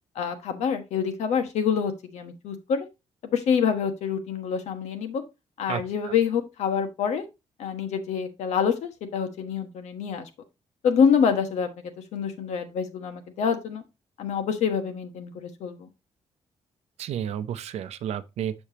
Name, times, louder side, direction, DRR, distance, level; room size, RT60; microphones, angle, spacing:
voice 1, 0.1-2.9 3.2-5.2 5.6-7.2 7.6-10.3 10.8-13.8 14.2-15.9, left 7 dB, 90° left, 1.3 m, -26 dB
voice 2, 5.7-6.1 17.0-18.5, right 9 dB, 75° right, 0.6 m, -32 dB
7.0 x 6.7 x 2.8 m
cardioid pair, 145°, 11 cm